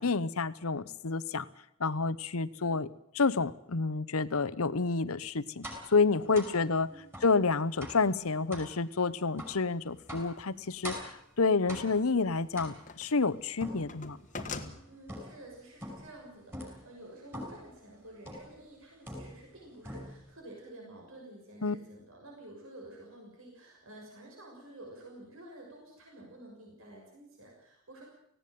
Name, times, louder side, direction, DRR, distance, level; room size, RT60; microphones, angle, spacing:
voice 1, 0.0-1.5 1.8-2.9 3.1-5.6 5.9-6.9 7.2-14.2 21.6-21.8, left 4 dB, 75° left, 16 dB, 0.9 m, -29 dB
sound 1, 5.6-5.9 6.3-6.6 7.1-7.4 7.8-8.1 8.5-8.7 9.4-9.6 10.1-10.4 10.8-11.2 11.7-12.1 12.6-13.1 13.6-14.7 15.1-15.5 15.8-16.2 16.5-16.8 17.3-17.7 18.3-18.6 19.1-19.6 19.8-20.3, equal, 10° right, 6.0 m, -43 dB
sound 2, 10.1-10.2 11.9-13.2 13.5-14.7, left 4 dB, 35° left, 1.5 m, -42 dB
voice 2, 14.6-28.0, right 1 dB, 65° right, -1 dB, 6.5 m, -51 dB
18.5 x 16.5 x 9.3 m, 0.78 s
head